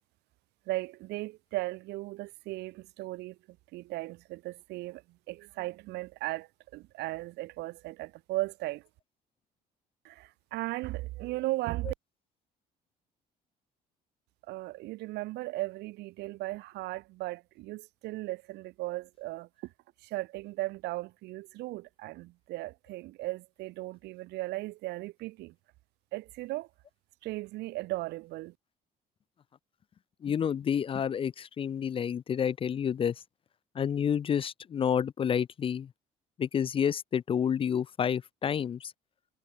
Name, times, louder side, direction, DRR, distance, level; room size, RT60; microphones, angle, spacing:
voice 1, 0.7-3.4 3.7-5.0 5.3-8.8 10.0-11.9 14.5-19.5 20.0-25.5 26.1-26.7 27.2-28.5, right 19 dB, 85° right, 2.1 m, -37 dB
voice 2, 30.2-33.1 33.8-35.9 36.4-38.9, left 8 dB, 30° left, 0.4 m, -29 dB
cardioid pair, 110°, 17 cm